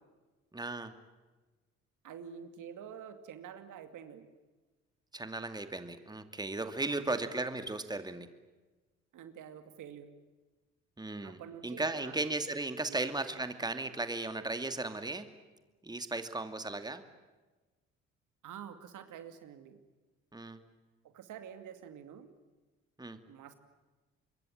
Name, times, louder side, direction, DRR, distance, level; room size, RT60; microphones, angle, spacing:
voice 1, 0.5-0.9 5.1-8.3 11.0-15.3 15.8-17.0 20.3-20.6 23.0-23.2, right 2 dB, 10° right, 9 dB, 2.4 m, -36 dB
voice 2, 2.0-4.3 6.9-7.0 9.1-10.1 11.2-12.3 12.9-13.0 13.3-13.4 18.4-19.8 21.0-22.3 23.3-23.5, right 8 dB, 60° right, 9 dB, 2.5 m, -48 dB
26.0 x 22.5 x 8.9 m, 1.2 s
hypercardioid pair, 55°, 34 cm